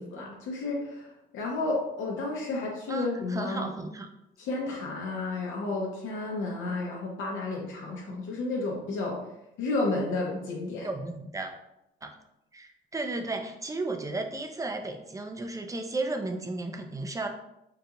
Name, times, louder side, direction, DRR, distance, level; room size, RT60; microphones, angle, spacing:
voice 1, 0.0-3.7 4.4-9.2 9.6-10.9, left 2 dB, 80° left, -3 dB, 0.7 m, -32 dB
voice 2, 2.9-4.1 10.8-11.5 12.0-12.1 12.5-17.3, right 2 dB, 15° right, 4 dB, 0.4 m, -34 dB
3.8 x 2.3 x 2.9 m, 0.86 s
cardioid pair, 90°, 20 cm